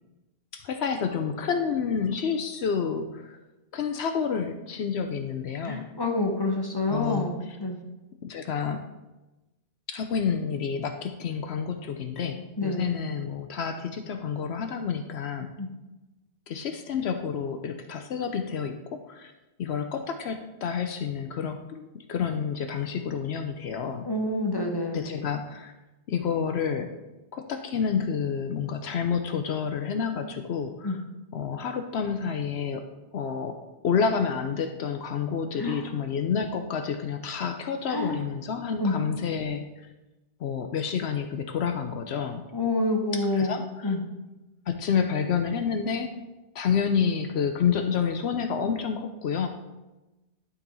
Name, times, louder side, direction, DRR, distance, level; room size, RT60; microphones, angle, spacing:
voice 1, 0.5-3.4 3.7-5.9 6.9-7.6 8.2-8.8 9.9-15.5 16.5-19.3 19.6-24.1 24.9-25.7 26.1-26.9 27.3-31.0 31.3-32.8 33.1-33.6 33.8-39.6 40.4-42.4 43.3-43.9 44.7-46.1 46.5-49.5, left 6 dB, 70° left, 6 dB, 0.8 m, -29 dB
voice 2, 5.6-7.8 12.6-12.9 15.6-15.7 24.0-25.0 30.8-31.0 35.6-35.9 37.9-38.1 38.8-39.0 42.5-43.6 43.8-44.0, left 2 dB, 20° left, 1 dB, 1.1 m, -27 dB
11.5 x 4.2 x 4.0 m, 1.0 s
omnidirectional pair, 1.2 m